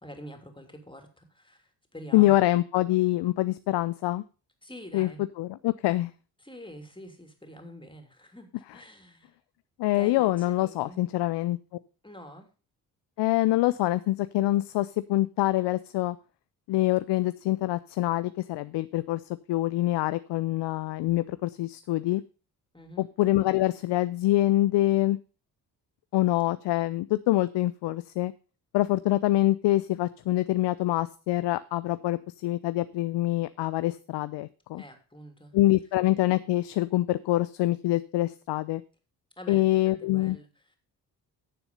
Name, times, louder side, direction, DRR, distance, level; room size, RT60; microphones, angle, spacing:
voice 1, 0.0-2.3 4.6-5.2 6.4-9.3 9.9-11.0 12.0-12.5 22.7-23.1 34.8-35.6 39.4-40.8, equal, 10° left, 5 dB, 3.1 m, -46 dB
voice 2, 2.1-4.2 4.9-5.1 5.4-6.1 9.8-11.6 13.2-16.2 16.7-19.2 19.5-22.2 23.0-25.2 26.1-28.3 28.7-34.8 35.5-38.8 39.5-40.4, left 16 dB, 60° left, 15 dB, 0.6 m, -25 dB
10.0 x 7.0 x 5.4 m, 0.35 s
hypercardioid pair, 40°, 48 cm